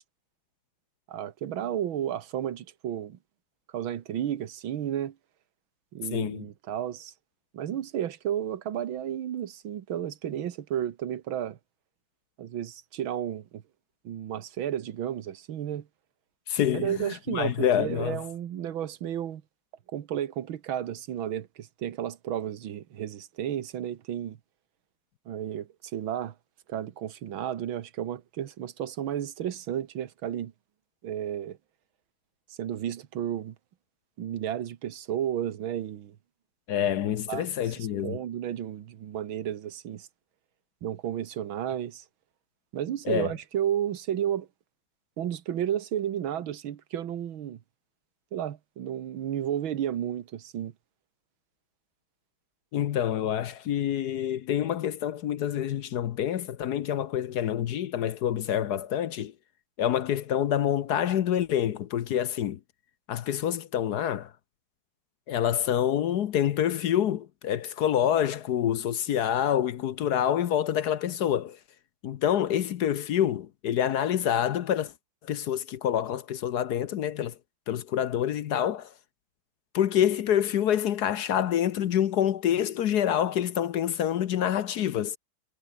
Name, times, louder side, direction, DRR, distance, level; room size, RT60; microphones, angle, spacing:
voice 1, 1.1-3.2 3.7-5.2 5.9-7.1 7.5-11.6 12.4-13.6 14.0-15.9 16.7-19.4 19.9-24.4 25.3-26.4 26.7-30.5 31.0-31.6 32.6-33.6 34.2-36.2 37.3-37.5 37.8-40.1 40.8-42.0 42.7-44.5 45.2-47.6 48.3-50.7, right 10 dB, 85° right, 2.0 m, -32 dB
voice 2, 6.1-6.4 16.5-18.2 36.7-38.2 43.1-43.3 52.7-59.3 59.8-62.6 63.1-64.3 65.3-71.6 72.0-74.9 75.2-77.3 77.7-78.9 79.7-85.2, left 10 dB, 65° left, 1.2 m, -27 dB
omnidirectional pair, 2.1 m